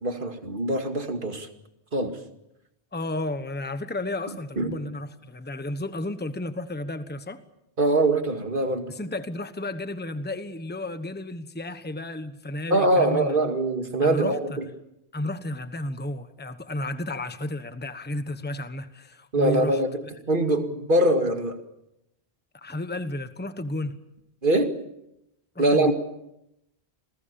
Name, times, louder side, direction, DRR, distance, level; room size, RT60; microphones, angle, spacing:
voice 1, 0.0-1.5 1.9-2.2 4.6-4.7 7.8-8.9 12.7-14.7 19.3-21.6 24.4-24.7 25.6-25.9, right 2 dB, 50° right, 6 dB, 2.4 m, -23 dB
voice 2, 2.9-7.4 8.9-13.3 14.0-14.6 15.1-19.8 22.5-24.0 25.5-25.9, left 1 dB, 10° left, 10 dB, 1.1 m, -32 dB
28.0 x 20.5 x 7.0 m, 0.83 s
omnidirectional pair, 1.1 m